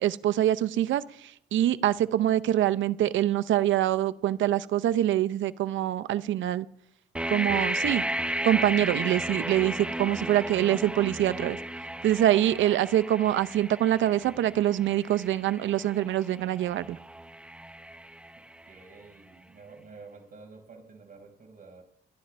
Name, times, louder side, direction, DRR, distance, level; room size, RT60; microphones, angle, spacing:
voice 1, 0.0-6.7 7.3-8.0 8.4-11.6 12.0-17.0, right 12 dB, 75° right, 14 dB, 0.7 m, -25 dB
sound 1, 7.2-19.0, right 1 dB, 5° right, 0.9 m, -34 dB
voice 2, 18.7-21.8, right 4 dB, 45° right, 3 dB, 5.2 m, -49 dB
25.5 x 11.0 x 3.4 m, 0.66 s
cardioid pair, 90°, 20 cm